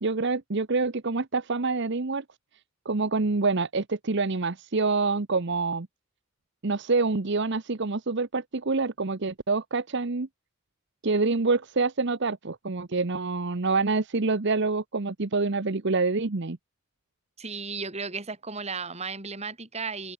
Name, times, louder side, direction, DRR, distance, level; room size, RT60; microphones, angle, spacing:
voice 1, 0.0-2.2 2.8-5.9 6.6-10.3 11.0-16.6, right 3 dB, 55° right, 1.0 m, -26 dB
voice 2, 17.4-20.1, right 4 dB, 30° right, 6.1 m, -34 dB
open air
head